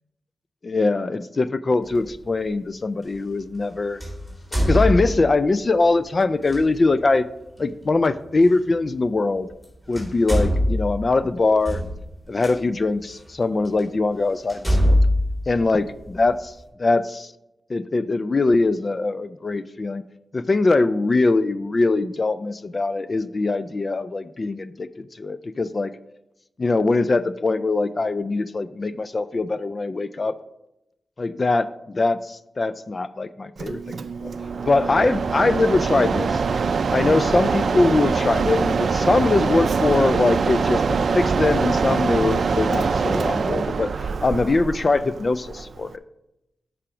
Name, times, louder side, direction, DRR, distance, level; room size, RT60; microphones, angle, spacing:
voice 1, 0.6-4.0 4.7-7.3 7.6-9.5 9.9-11.8 12.3-15.0 15.5-16.5 16.8-17.3 17.7-20.0 20.3-24.9 25.2-25.9 26.6-30.4 31.2-34.3 34.7-36.4 36.9-43.9 44.2-46.0, left 3 dB, 45° left, 14 dB, 0.3 m, -22 dB
sound 1, 1.9-2.1 4.0-5.5 6.4-6.6 8.5-8.6 9.5-9.6 9.9-12.5 13.2-13.3 13.8-13.9 14.5-16.3, equal, 10° left, 3.3 m, -22 dB
Mechanisms, 33.6-46.0, right 5 dB, 70° right, 0.4 m, -23 dB
8.7 x 4.9 x 5.0 m, 0.88 s
cardioid pair, 70°, 0 cm